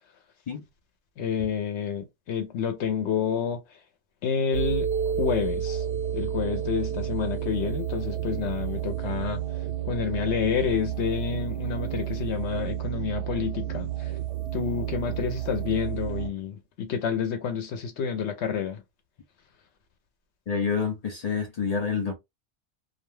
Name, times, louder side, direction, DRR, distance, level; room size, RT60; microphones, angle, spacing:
voice 1, 1.2-3.6 4.2-5.8 6.1-9.4 9.9-14.1 14.5-18.8, left 7 dB, 75° left, 0.9 m, -29 dB
sound 1, 4.5-16.3, right 10 dB, 75° right, 0.9 m, -31 dB
voice 2, 20.5-22.1, left 6 dB, 50° left, 0.5 m, -28 dB
2.4 x 2.2 x 3.1 m
omnidirectional pair, 1.2 m